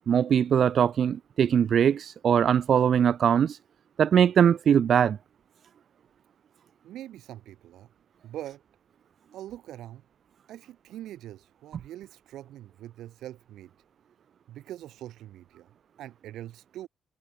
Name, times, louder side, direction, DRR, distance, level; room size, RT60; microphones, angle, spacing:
voice 1, 0.1-3.5 4.0-5.2, right 8 dB, 60° right, 0.4 m, -21 dB
voice 2, 6.8-7.9 8.2-8.6 9.3-10.0 10.5-13.7 14.5-15.7 16.0-16.9, right 13 dB, 80° right, 3.1 m, -43 dB
cardioid pair, 90°, 0 cm